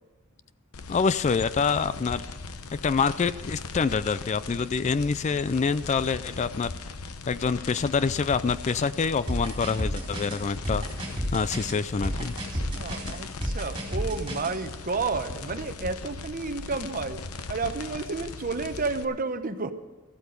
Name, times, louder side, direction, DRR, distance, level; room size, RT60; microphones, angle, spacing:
sound 1, 0.7-19.0, left 4 dB, 75° left, 0.9 m, -39 dB
voice 1, 0.9-2.3 2.8-6.7 7.3-10.9 11.3-12.3, left 5 dB, 30° left, 15 dB, 0.3 m, -26 dB
sound 2, 9.3-14.6, equal, 20° right, 3.8 m, -31 dB
voice 2, 12.1-17.2 17.5-19.7, right 4 dB, 40° right, 10 dB, 0.9 m, -31 dB
14.5 x 12.5 x 5.3 m, 1.3 s
head